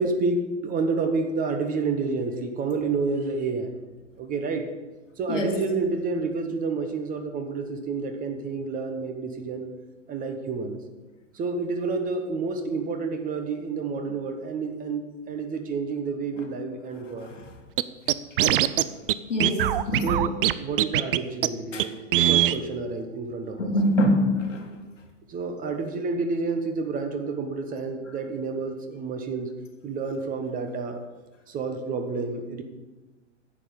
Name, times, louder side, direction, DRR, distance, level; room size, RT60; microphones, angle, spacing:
voice 1, 0.0-3.8 4.2-4.6 5.2-9.7 10.1-10.8 11.3-17.3 18.4-18.6 20.0-20.3 20.6-23.7 25.3-29.5 29.8-31.0 31.5-32.6, right 4 dB, 20° right, 5 dB, 1.1 m, -29 dB
voice 2, 5.3-5.7 16.4-16.5 17.2-17.4 18.8-18.9 19.3-20.2 21.7-21.9 23.6-24.7, left 1 dB, 75° left, 2 dB, 2.0 m, -25 dB
Scratching (performance technique), 17.8-17.9 18.1-18.8 19.1-19.2 19.4-20.5 20.8-21.2 21.4-21.5 21.8-21.9 22.1-22.6, right 13 dB, 50° right, 0.5 m, -21 dB
9.7 x 7.6 x 5.3 m, 1.2 s
figure-of-eight pair, 100°, 37 cm